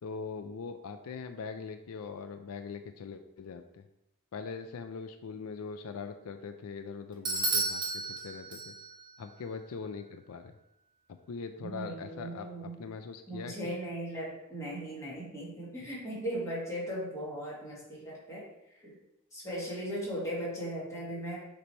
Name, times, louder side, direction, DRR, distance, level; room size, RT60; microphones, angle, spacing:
voice 1, 0.0-3.8 4.3-8.7 9.2-10.5 11.3-13.7, left 5 dB, 80° left, 8 dB, 0.4 m, -41 dB
Bell / Doorbell, 7.2-9.1, right 3 dB, 20° right, 0.7 m, -32 dB
voice 2, 11.6-12.8 13.3-18.4 18.8-19.0 19.3-21.4, right 1 dB, 15° left, -7 dB, 2.0 m, -38 dB
6.7 x 3.3 x 4.4 m, 0.85 s
head